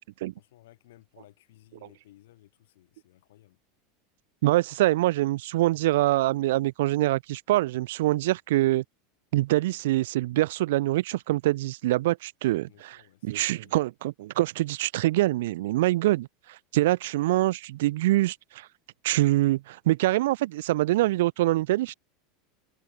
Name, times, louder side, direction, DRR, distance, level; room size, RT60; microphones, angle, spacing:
voice 1, 0.4-3.6 12.7-13.8, left 15 dB, 85° left, 3.6 m, -57 dB
voice 2, 4.4-8.8 9.3-13.0 13.2-16.3 16.7-18.7 19.0-21.9, right 17 dB, 80° right, 0.4 m, -24 dB
supercardioid pair, 165°, 0 cm